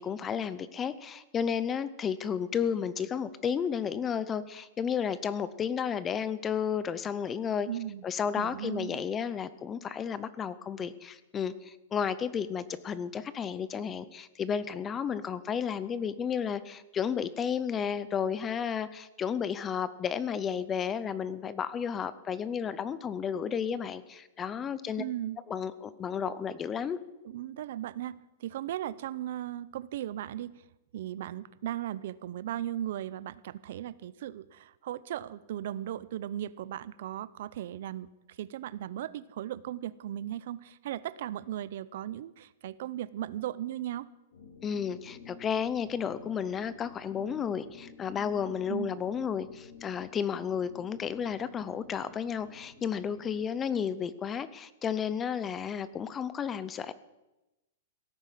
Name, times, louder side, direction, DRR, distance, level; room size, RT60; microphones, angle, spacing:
voice 1, 0.0-7.7 8.0-25.0 25.5-27.0 44.6-56.9, left 7 dB, 15° left, 16 dB, 0.6 m, -32 dB
voice 2, 7.7-8.0 8.4-9.0 25.0-25.4 27.2-30.7 30.9-44.1 48.7-49.0, right 12 dB, 55° right, 18 dB, 0.6 m, -37 dB
sound 1, 44.3-53.4, left 5 dB, 75° left, 3.6 m, -51 dB
17.0 x 9.8 x 7.4 m, 1.0 s
supercardioid pair, 165°, 0 cm